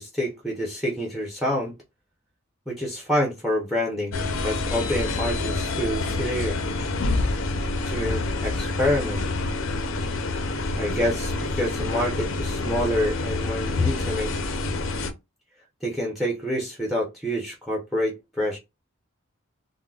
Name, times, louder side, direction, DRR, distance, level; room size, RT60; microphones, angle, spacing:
voice 1, 0.0-1.8 2.7-6.6 7.9-9.3 10.8-14.3 15.8-18.6, equal, ahead, 0.6 m, -27 dB
sound 1, 4.1-15.1, left 3 dB, 70° left, 0.5 m, -27 dB
3.6 x 2.1 x 2.3 m
head